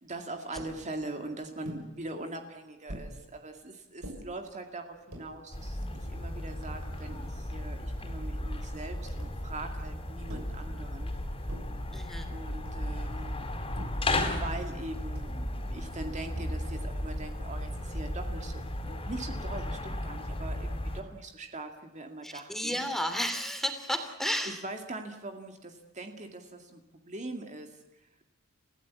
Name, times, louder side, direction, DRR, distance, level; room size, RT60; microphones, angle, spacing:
voice 1, 0.0-11.1 12.3-13.4 13.9-22.8 24.4-28.0, right 2 dB, 35° right, 5 dB, 2.2 m, -42 dB
sound 1, 0.6-0.8 1.6-1.9 2.9-3.1 4.0-4.2 4.9-5.3 6.0-6.1 6.3-7.4 9.2-9.5 10.3-10.6 11.5-11.8 12.6-13.0 13.8-14.1 15.1-15.4 16.3-16.8, equal, 80° right, 6.7 m, -43 dB
sound 2, 5.5-21.0, left 1 dB, 25° left, 4.2 m, -35 dB
voice 2, 11.9-12.3 22.2-24.6, equal, ahead, 6 dB, 3.0 m, -32 dB
29.5 x 16.5 x 8.5 m, 1.0 s
head